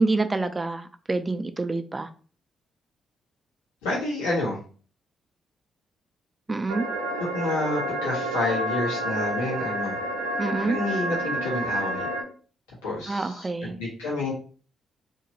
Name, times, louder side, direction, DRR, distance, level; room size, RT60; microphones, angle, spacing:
voice 1, 0.0-2.1 6.5-6.8 10.4-10.8 13.1-13.8, right 3 dB, 30° right, 8 dB, 0.5 m, -27 dB
voice 2, 3.8-4.6 7.3-10.0 10.6-12.1 12.8-14.3, left 2 dB, 90° left, -8 dB, 1.1 m, -29 dB
sound 1, 6.7-12.2, right 1 dB, 85° right, 0.5 m, -29 dB
2.9 x 2.8 x 2.8 m, 0.40 s
hypercardioid pair, 45°, 0 cm